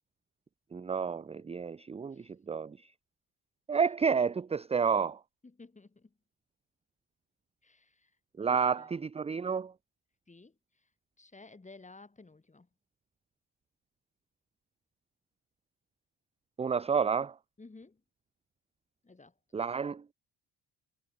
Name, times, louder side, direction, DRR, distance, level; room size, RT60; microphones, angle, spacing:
voice 1, 0.7-2.8 3.7-5.2 8.4-9.7 16.6-17.4 19.5-20.1, right 6 dB, 15° right, 0.4 m, -30 dB
voice 2, 5.4-6.2 7.6-8.2 8.7-8.9 10.3-10.9 11.2-12.7 17.6-18.0 19.0-19.6, left 3 dB, 15° left, 2.7 m, -55 dB
cardioid pair, 100°, 43 cm